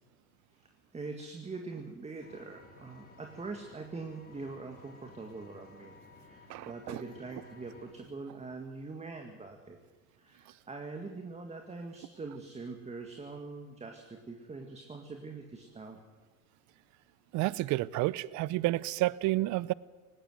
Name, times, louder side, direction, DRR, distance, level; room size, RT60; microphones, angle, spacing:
voice 1, 0.9-9.8 10.2-16.0, right 3 dB, 15° right, 2.0 m, -43 dB
Vehicle, 2.2-7.9, left 3 dB, 20° left, 5.5 m, -56 dB
voice 2, 6.5-7.0 17.3-19.7, right 18 dB, 45° right, 0.7 m, -30 dB
19.0 x 17.0 x 8.0 m
hypercardioid pair, 105°, 41 cm